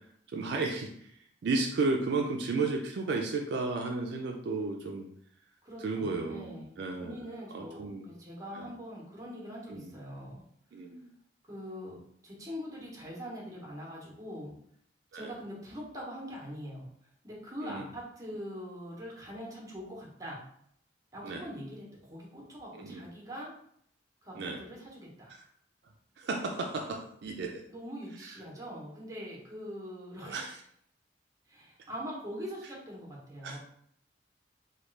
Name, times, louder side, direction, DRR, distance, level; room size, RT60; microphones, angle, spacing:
voice 1, 0.3-1.1 1.4-5.1 5.8-8.1 8.5-8.7 9.7-9.9 10.7-11.1 15.1-15.3 17.6-17.8 21.2-21.4 22.7-23.0 24.4-24.6 26.2-27.6 30.2-30.5 33.4-33.6, right 3 dB, 60° right, 2 dB, 0.3 m, -33 dB
voice 2, 5.6-10.4 11.4-14.5 15.1-16.9 17.2-20.4 21.1-23.5 24.2-25.3 27.7-30.5 31.5-33.6, equal, 20° right, -3 dB, 0.9 m, -43 dB
3.0 x 2.3 x 3.2 m, 0.68 s
head